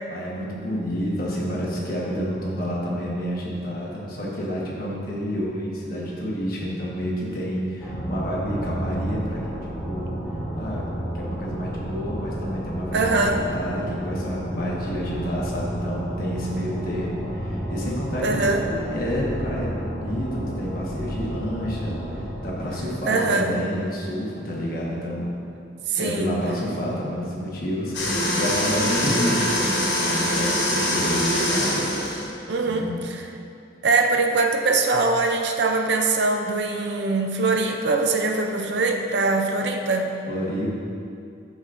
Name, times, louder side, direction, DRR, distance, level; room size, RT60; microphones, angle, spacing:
voice 1, 0.1-10.1 10.5-10.8 11.1-25.3 26.0-31.8 32.6-33.0 40.3-40.7, equal, 50° left, -5 dB, 1.3 m, -29 dB
sound 1, 7.8-23.0, equal, 5° left, 1.8 m, -31 dB
voice 2, 12.9-13.4 18.2-18.6 23.1-23.5 25.9-26.4 32.5-33.3 33.8-40.1, right 3 dB, 65° right, 4 dB, 0.5 m, -22 dB
sound 2, 27.9-32.3, left 1 dB, 70° left, 1.5 m, -23 dB
9.0 x 6.5 x 2.6 m, 2.5 s
head